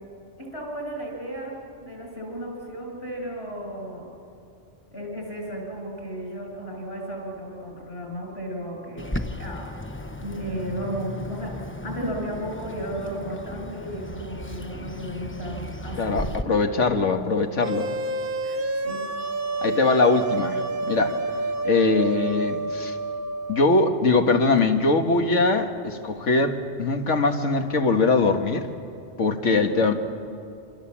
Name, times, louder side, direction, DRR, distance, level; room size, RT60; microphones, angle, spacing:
voice 1, 0.4-4.1 4.9-9.7 10.2-11.6 11.8-16.7 18.4-19.0 29.5-29.7, equal, 60° left, 0 dB, 6.4 m, -34 dB
Bird, 9.0-16.4, left 1 dB, 10° left, 0.8 m, -35 dB
voice 2, 16.0-17.9 19.6-20.6 20.9-21.2 21.6-23.0 23.5-28.7 29.2-29.9, left 3 dB, 85° left, 5 dB, 1.9 m, -21 dB
sound 1, 17.6-23.8, right 3 dB, 50° right, 1.2 m, -29 dB
26.0 x 25.5 x 7.4 m, 2.5 s
omnidirectional pair, 1.2 m